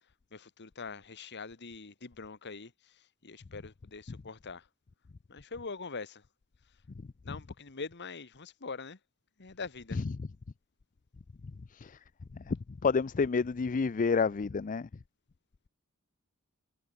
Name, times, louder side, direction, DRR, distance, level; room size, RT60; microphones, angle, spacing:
voice 1, 0.3-4.7 5.3-6.2 7.2-9.0 9.4-10.0, left 4 dB, 55° left, 1.5 m, -43 dB
voice 2, 12.8-14.9, left 5 dB, 40° left, 0.4 m, -29 dB
head